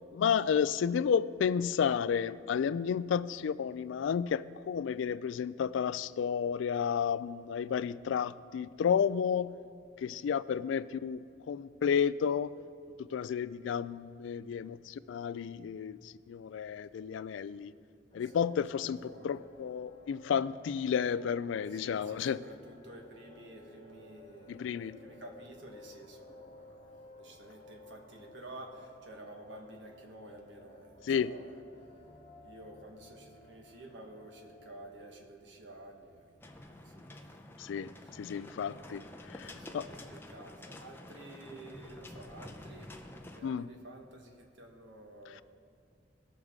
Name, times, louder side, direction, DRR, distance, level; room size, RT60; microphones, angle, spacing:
voice 1, 0.1-9.5 10.0-12.5 13.1-17.7 18.1-22.4 24.5-25.0 31.1-31.3 37.6-37.9 38.2-39.9 43.4-43.7, left 7 dB, 80° left, 0.3 m, -32 dB
sound 1, 18.1-35.1, left 1 dB, 30° left, 0.8 m, -56 dB
voice 2, 18.7-19.4 21.7-31.6 32.4-37.3 38.0-38.1 39.3-45.4, right 1 dB, 70° right, 1.4 m, -51 dB
sound 2, 36.4-43.4, left 1 dB, 10° left, 0.5 m, -49 dB
18.0 x 6.5 x 3.6 m
head